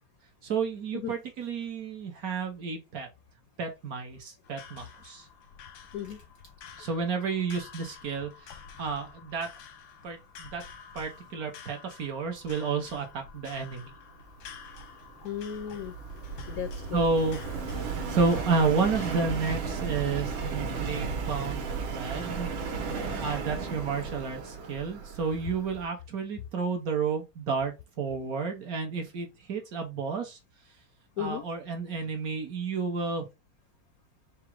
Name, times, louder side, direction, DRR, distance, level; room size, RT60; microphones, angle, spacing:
voice 1, 0.4-3.1 3.6-5.3 6.8-9.5 10.0-10.6 10.9-13.9 16.9-17.4 18.1-22.5 23.2-30.4 31.2-33.3, right 5 dB, 60° right, 1.1 m, -31 dB
sound 1, 4.4-19.2, left 6 dB, 90° left, 1.6 m, -50 dB
Subway metro underground, 14.5-25.8, right 5 dB, 90° right, 1.7 m, -35 dB
voice 2, 15.2-15.9 16.5-17.1 31.2-31.4, left 9 dB, 75° left, 0.8 m, -35 dB
4.8 x 2.0 x 4.5 m
omnidirectional pair, 2.1 m